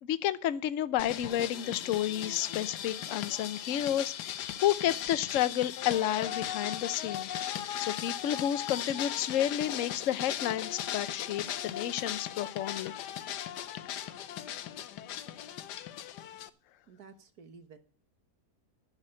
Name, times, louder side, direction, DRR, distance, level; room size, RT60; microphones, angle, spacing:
voice 1, 0.0-7.3 7.8-12.9, left 11 dB, 60° left, 14 dB, 1.0 m, -31 dB
sound 1, 1.0-16.5, left 11 dB, 85° left, 1.4 m, -38 dB
voice 2, 16.9-17.8, right 5 dB, 65° right, 9 dB, 1.9 m, -52 dB
11.0 x 6.5 x 8.7 m, 0.37 s
omnidirectional pair, 1.7 m